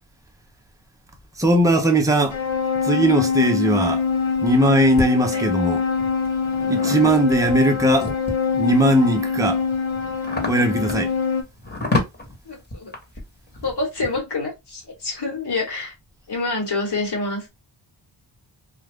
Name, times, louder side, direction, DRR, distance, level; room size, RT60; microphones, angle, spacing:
voice 1, 1.4-2.4 2.8-4.0 4.4-5.8 6.7-8.1 8.6-9.6 10.5-11.1, right 1 dB, 5° right, 0.7 m, -19 dB
sound 1, 2.3-11.4, left 5 dB, 70° left, 0.9 m, -24 dB
sound 2, 3.8-5.1 5.7-8.6 9.1-14.2, left 2 dB, 20° left, 1.3 m, -30 dB
voice 2, 12.5-12.9 13.6-15.9 16.3-17.4, left 3 dB, 50° left, 1.4 m, -27 dB
2.4 x 2.3 x 3.4 m
cardioid pair, 60°, 50 cm